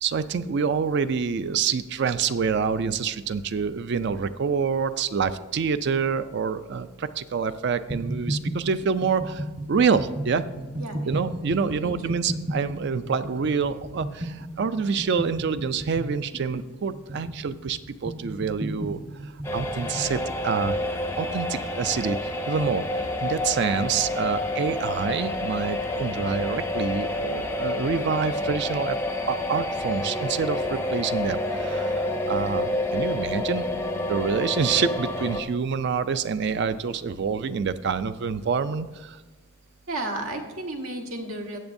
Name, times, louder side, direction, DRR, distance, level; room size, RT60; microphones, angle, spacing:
voice 1, 0.0-10.5 11.1-19.0 19.5-29.0 29.3-33.7 34.1-39.2, right 5 dB, 50° right, 13 dB, 0.4 m, -27 dB
sound 1, 7.9-20.2, right 1 dB, 35° right, 1.2 m, -34 dB
voice 2, 10.8-11.3 11.7-12.2 39.9-41.6, right 1 dB, 75° right, 3 dB, 1.3 m, -33 dB
sound 2, 19.4-35.4, left 1 dB, 10° left, 0.5 m, -29 dB
14.0 x 8.0 x 2.6 m, 1.3 s
head